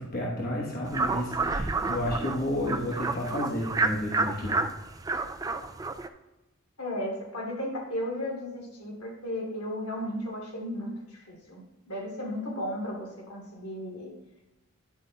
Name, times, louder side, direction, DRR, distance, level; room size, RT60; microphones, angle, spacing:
voice 1, 0.0-4.6, left 1 dB, 40° left, -3 dB, 1.1 m, -31 dB
sound 1, 0.8-6.1, right 3 dB, 15° right, 0.3 m, -30 dB
voice 2, 6.8-14.1, left 1 dB, 80° left, -3 dB, 2.7 m, -35 dB
10.5 x 7.7 x 2.3 m, 0.99 s
head